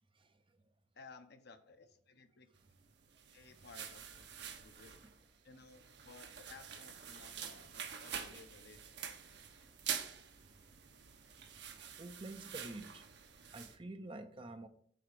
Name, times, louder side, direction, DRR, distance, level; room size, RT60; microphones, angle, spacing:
voice 1, 0.9-2.5 3.3-4.4 4.6-4.9 5.4-8.8, left 4 dB, 55° left, 1.0 m, -57 dB
sound 1, 3.0-13.8, right 8 dB, 60° right, 1.0 m, -47 dB
voice 2, 11.8-13.0 13.5-14.7, right 2 dB, 25° right, 0.6 m, -48 dB
7.6 x 4.9 x 6.7 m
head